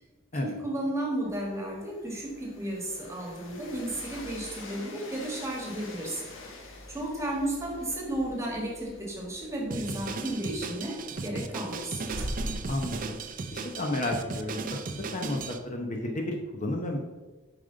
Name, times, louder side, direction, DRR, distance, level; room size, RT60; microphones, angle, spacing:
voice 1, 0.4-6.3 6.9-12.0, right 1 dB, 15° right, -1 dB, 1.5 m, -33 dB
Train, 1.2-11.1, left 2 dB, 70° left, 1.2 m, -47 dB
sound 1, 7.8-10.6 10.9-11.0 11.3-11.4 11.7-11.8 12.1-13.8, equal, 65° right, 1.0 m, -39 dB
Drum kit, 9.7-15.6, right 4 dB, 40° right, 0.5 m, -36 dB
voice 2, 12.7-13.2 13.5-14.6 14.9-17.0, left 1 dB, 40° left, 1 dB, 0.8 m, -32 dB
7.4 x 5.1 x 3.9 m, 1.2 s
head